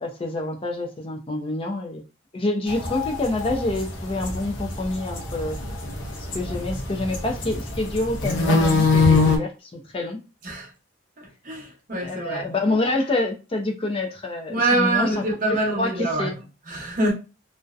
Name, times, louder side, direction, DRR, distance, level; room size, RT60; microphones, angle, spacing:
voice 1, 0.0-2.0 2.3-5.6 6.2-10.2 12.0-15.2 15.5-16.3, left 2 dB, 30° left, 0.5 m, -27 dB
sound 1, 2.7-9.4, left 3 dB, 75° left, 0.7 m, -23 dB
voice 2, 11.2-12.5 14.5-16.3 16.7-17.1, right 2 dB, 45° right, 0.8 m, -25 dB
2.6 x 2.1 x 2.4 m
head